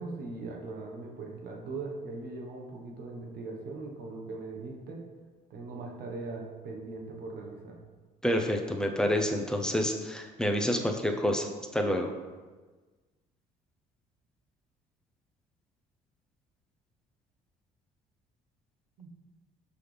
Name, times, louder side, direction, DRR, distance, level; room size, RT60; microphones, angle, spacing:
voice 1, 0.0-5.0 5.5-7.8 19.0-19.1, right 3 dB, 70° right, 1 dB, 1.3 m, -40 dB
voice 2, 8.2-12.1, equal, 5° left, 3 dB, 0.7 m, -28 dB
6.2 x 5.5 x 3.4 m, 1.3 s
cardioid pair, 110°, 17 cm